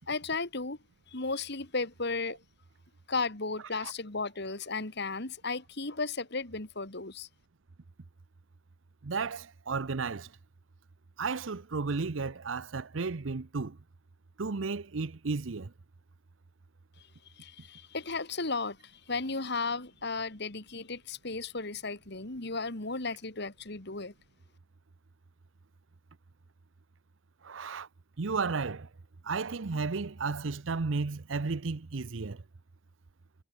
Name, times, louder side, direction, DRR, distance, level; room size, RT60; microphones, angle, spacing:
voice 1, 0.1-0.8 1.1-2.4 3.1-7.3 17.4-24.1, left 3 dB, 60° left, 2.8 m, -35 dB
voice 2, 9.0-10.3 11.2-13.8 14.4-15.7 27.4-27.9 28.2-28.9 29.2-32.4, right 4 dB, 85° right, 0.8 m, -33 dB
head